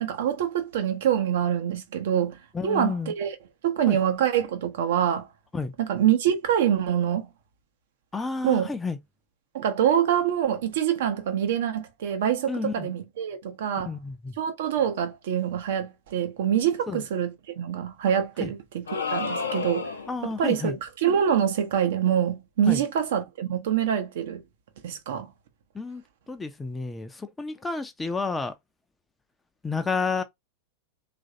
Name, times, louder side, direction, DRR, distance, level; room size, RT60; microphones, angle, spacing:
voice 1, 0.0-2.4 2.6-3.3 3.6-5.3 5.8-7.3 8.4-8.7 9.5-13.9 14.4-19.9 20.2-24.4 24.8-25.3, right 9 dB, 55° right, 0.7 m, -25 dB
voice 2, 2.5-3.1 3.9-4.0 5.5-5.7 8.1-9.0 12.5-12.9 13.8-14.3 16.9-17.0 18.4-18.5 20.1-20.8 22.7-22.8 25.7-26.0 26.3-28.5 29.6-30.2, left 4 dB, 10° left, 0.5 m, -30 dB
sound 1, 18.9-20.2, left 5 dB, 70° left, 0.7 m, -30 dB
3.1 x 2.5 x 2.6 m
figure-of-eight pair, 90°, 0 cm